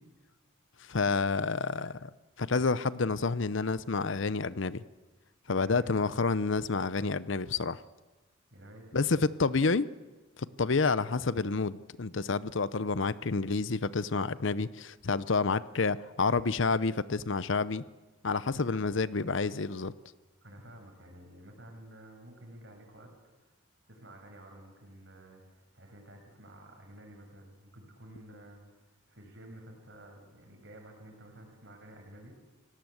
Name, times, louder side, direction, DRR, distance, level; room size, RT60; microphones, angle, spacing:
voice 1, 0.9-2.1 2.4-4.8 5.5-7.8 8.9-9.9 10.6-17.8 18.2-19.9, left 4 dB, 65° left, 0.7 m, -29 dB
voice 2, 5.5-6.4 8.5-9.5 20.4-23.1 23.9-32.4, right 1 dB, 55° right, 6.3 m, -51 dB
29.0 x 18.0 x 8.0 m
head